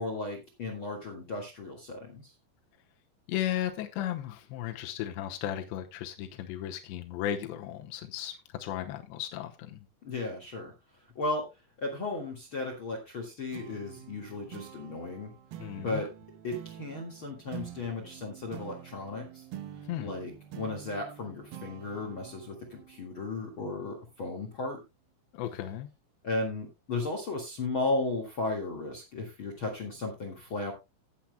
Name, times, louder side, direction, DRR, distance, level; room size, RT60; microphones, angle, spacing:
voice 1, 0.0-2.3 10.0-10.7 11.1-11.5 11.8-15.3 15.8-16.1 16.4-19.4 20.0-24.8 26.2-30.7, left 2 dB, 50° left, 1.6 m, -35 dB
voice 2, 3.3-9.9 15.6-16.0 19.9-20.1 25.3-25.9, left 11 dB, 80° left, 3.1 m, -35 dB
sound 1, 13.5-24.3, right 11 dB, 70° right, 2.2 m, -47 dB
17.5 x 8.6 x 2.2 m
omnidirectional pair, 5.2 m